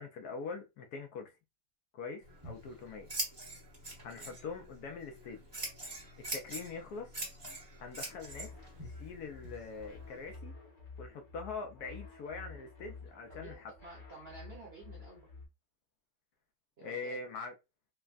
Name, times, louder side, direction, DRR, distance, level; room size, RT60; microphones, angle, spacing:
voice 1, 0.0-1.3 1.9-3.1 4.0-5.4 6.2-7.1 7.8-8.5 8.8-10.5 11.0-13.7 16.8-17.5, left 4 dB, 70° left, 1.1 m, -43 dB
Scissors, 2.2-10.3, right 1 dB, 20° right, 0.9 m, -44 dB
sound 1, 8.1-15.5, left 4 dB, 40° left, 0.7 m, -51 dB
voice 2, 13.3-15.3 16.8-17.4, right 3 dB, 50° right, 0.7 m, -52 dB
3.3 x 2.2 x 2.3 m
omnidirectional pair, 1.9 m